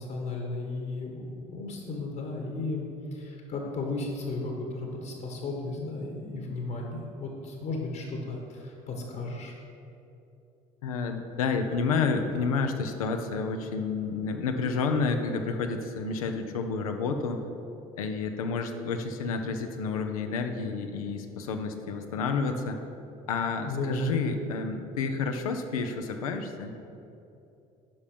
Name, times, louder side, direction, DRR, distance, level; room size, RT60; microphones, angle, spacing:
voice 1, 0.0-9.5 23.7-24.1, left 2 dB, 60° left, 0 dB, 1.6 m, -34 dB
voice 2, 10.8-17.4 18.0-22.8 23.3-26.7, left 4 dB, 90° left, 5 dB, 0.7 m, -30 dB
10.5 x 5.4 x 5.1 m, 2.8 s
hypercardioid pair, 60°, 18 cm